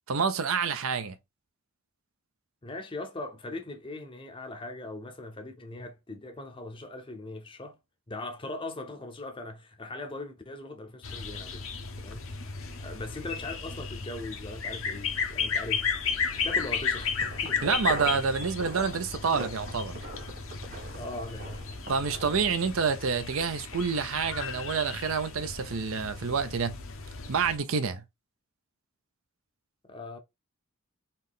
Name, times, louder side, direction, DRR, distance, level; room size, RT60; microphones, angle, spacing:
voice 1, 0.1-1.2 17.6-20.0 21.9-26.8 27.3-28.0, right 5 dB, 65° right, 0.6 m, -28 dB
voice 2, 2.6-7.8 8.1-11.7 12.0-16.1 16.4-18.2 20.9-21.6 27.7-27.8 29.8-30.2, left 2 dB, 25° left, 0.6 m, -40 dB
sound 1, 11.0-27.6, left 6 dB, 65° left, 0.8 m, -34 dB
sound 2, 15.7-22.5, right 1 dB, 50° right, 1.6 m, -43 dB
4.1 x 2.7 x 3.6 m
head